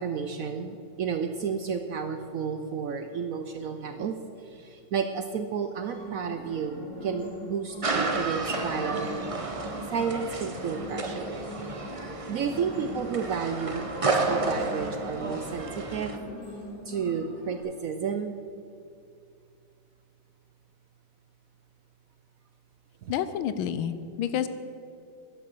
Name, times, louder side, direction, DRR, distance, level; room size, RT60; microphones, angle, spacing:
voice 1, 0.0-9.1 9.9-11.4 12.3-16.2 16.9-18.3 23.0-23.1, right 6 dB, 85° right, 7 dB, 0.7 m, -32 dB
sound 1, 5.8-17.6, left 1 dB, 5° left, 3.5 m, -42 dB
sound 2, 7.8-16.2, right 3 dB, 55° right, 0.3 m, -31 dB
voice 2, 23.1-24.5, left 9 dB, 85° left, 12 dB, 1.5 m, -29 dB
11.5 x 10.5 x 6.7 m, 2.5 s
omnidirectional pair, 2.2 m